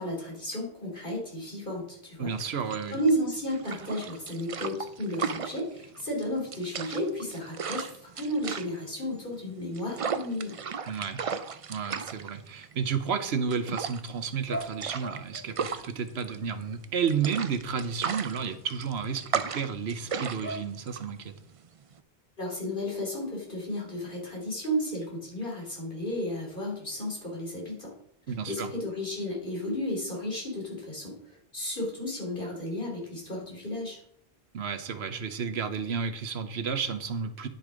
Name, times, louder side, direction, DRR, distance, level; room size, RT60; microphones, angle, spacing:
voice 1, 0.0-2.4 2.9-10.6 22.4-27.9 28.3-34.0, equal, 55° left, -2 dB, 3.5 m, -33 dB
voice 2, 2.2-3.0 10.9-11.2 11.7-21.3 28.3-28.7 34.5-37.5, right 6 dB, 90° right, 10 dB, 1.2 m, -32 dB
sound 1, 2.3-22.0, right 6 dB, 40° right, 0.5 m, -36 dB
sound 2, 14.5-20.6, equal, 15° left, 0.7 m, -44 dB
10.0 x 6.4 x 5.0 m, 0.69 s
omnidirectional pair, 1.0 m